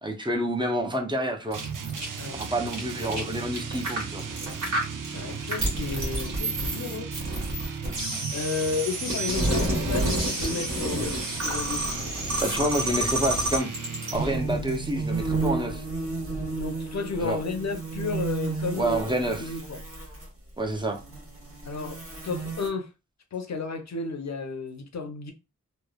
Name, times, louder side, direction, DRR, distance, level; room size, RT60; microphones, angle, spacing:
voice 1, 0.0-1.6 2.4-4.2 12.4-13.7 14.1-15.8 17.2-17.4 18.7-19.5 20.6-21.0, right 1 dB, 15° right, 0.6 m, -28 dB
sound 1, 1.5-14.1, right 1 dB, 60° right, 1.3 m, -29 dB
sound 2, 1.5-14.6, right 6 dB, 85° right, 0.5 m, -37 dB
voice 2, 5.1-7.1 8.3-11.8 16.6-19.8 21.6-22.9 23.3-25.3, left 4 dB, 60° left, 0.6 m, -32 dB
sound 3, 14.1-20.2 20.8-22.7, right 4 dB, 45° right, 1.0 m, -32 dB
3.0 x 2.1 x 2.2 m
wide cardioid pair, 80°, 31 cm